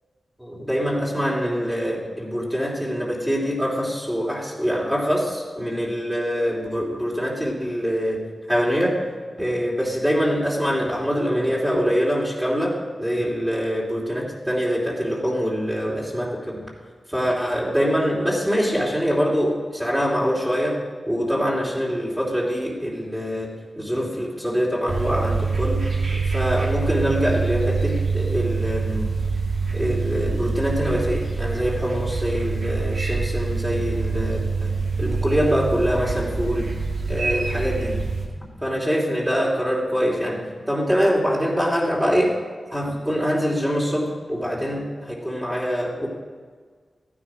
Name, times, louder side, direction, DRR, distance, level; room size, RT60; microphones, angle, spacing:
voice 1, 0.4-8.2 8.5-9.0 9.4-16.6 17.1-20.8 21.1-23.5 23.8-25.8 26.1-29.1 29.7-34.7 35.0-36.7 37.1-38.0 38.6-40.4 40.7-42.3 42.7-46.1, equal, 5° right, -4 dB, 2.9 m, -24 dB
sound 1, 24.9-38.3, right 4 dB, 80° right, 2.5 m, -25 dB
14.5 x 10.0 x 4.9 m, 1.6 s
wide cardioid pair, 80°, 0 cm